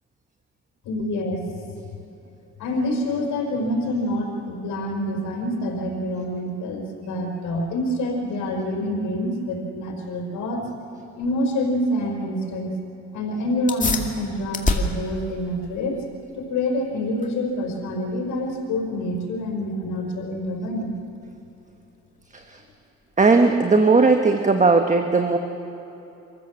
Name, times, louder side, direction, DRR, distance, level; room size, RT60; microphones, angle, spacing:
voice 1, 0.8-1.5 2.6-10.7 11.1-12.7 13.1-16.0 16.4-20.9, left 1 dB, 85° left, 0 dB, 4.8 m, -26 dB
sound 1, 13.6-23.6, left 2 dB, 25° left, 2.2 m, -32 dB
voice 2, 23.2-25.4, right 3 dB, 25° right, 5 dB, 1.3 m, -17 dB
26.5 x 14.5 x 7.3 m, 2.9 s
cardioid pair, 90°, 30 cm